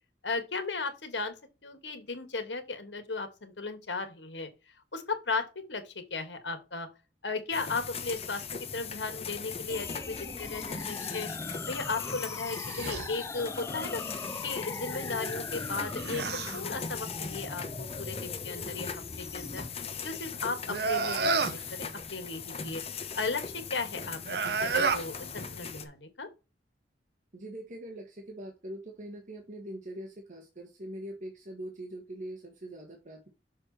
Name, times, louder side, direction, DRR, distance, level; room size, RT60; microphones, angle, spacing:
voice 1, 0.2-1.3 1.6-4.5 4.9-6.9 7.2-11.3 11.7-14.0 14.4-16.2 16.5-19.6 20.0-22.8 23.2-26.3, left 4 dB, 90° left, 1.8 m, -36 dB
sound 1, 7.5-25.8, left 6 dB, 35° left, 1.1 m, -39 dB
sound 2, 9.7-19.7, left 2 dB, 15° left, 0.4 m, -41 dB
sound 3, 12.5-13.1 15.6-16.6 20.7-21.6 24.2-25.1, right 4 dB, 65° right, 0.9 m, -30 dB
voice 2, 27.3-33.3, right 1 dB, 45° right, 1.5 m, -42 dB
6.7 x 4.6 x 4.2 m
head